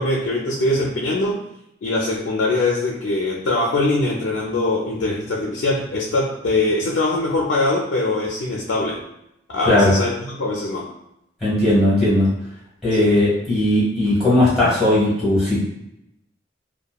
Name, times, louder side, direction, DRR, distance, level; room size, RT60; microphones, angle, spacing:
voice 1, 0.0-1.5 1.8-9.0 9.5-10.9 12.9-13.1, left 2 dB, 75° left, -2 dB, 0.4 m, -22 dB
voice 2, 11.4-12.3 12.8-15.6, left 1 dB, ahead, -10 dB, 1.2 m, -17 dB
2.8 x 2.2 x 2.3 m, 0.83 s
head